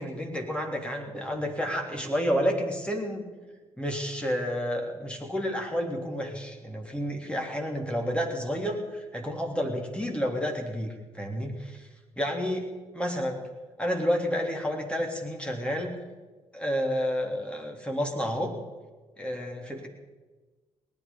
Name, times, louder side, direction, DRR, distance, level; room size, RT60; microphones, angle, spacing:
voice 1, 0.0-3.3 3.8-11.9 12.2-13.5 13.8-16.0 16.5-18.6 19.2-19.9, equal, 5° left, 2 dB, 3.4 m, -30 dB
18.5 x 11.0 x 5.6 m, 1.3 s
figure-of-eight pair, 40°, 16 cm